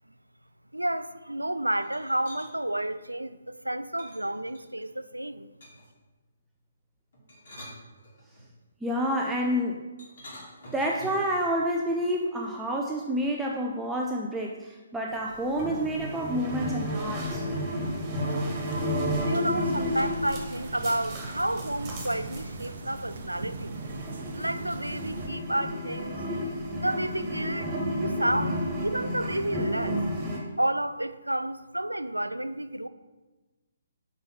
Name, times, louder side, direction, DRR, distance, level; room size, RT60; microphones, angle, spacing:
voice 1, 0.7-5.5 19.2-23.8 24.3-27.7 28.0-30.0 30.6-32.9, right 1 dB, 85° right, 0.4 m, -31 dB
sound 1, 1.8-2.5 4.0-4.9 5.6-6.0 7.1-8.5 10.0-11.3, equal, 50° left, 2.4 m, -47 dB
voice 2, 8.8-9.8 10.7-17.4, equal, 5° right, 0.5 m, -29 dB
sound 2, 15.1-30.4, equal, 20° right, 1.6 m, -32 dB
sound 3, 18.3-25.3, right 3 dB, 50° right, 0.7 m, -40 dB
5.5 x 5.3 x 5.8 m
figure-of-eight pair, 135°, 0 cm